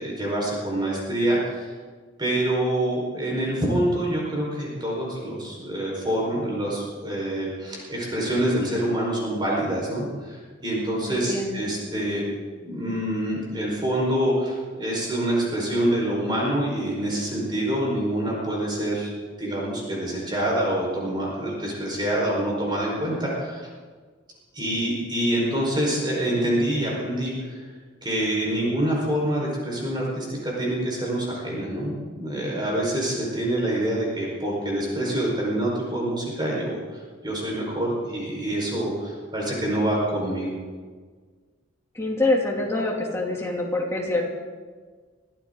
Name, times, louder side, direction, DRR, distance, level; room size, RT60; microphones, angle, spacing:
voice 1, 0.0-1.7 2.2-12.3 12.6-19.1 19.4-23.7 24.5-27.7 28.0-36.8 37.2-40.6, right 1 dB, 25° right, -3 dB, 5.0 m, -26 dB
voice 2, 11.0-11.6 41.9-44.2, left 2 dB, 15° left, -2 dB, 2.9 m, -25 dB
23.5 x 14.5 x 4.0 m, 1.5 s
head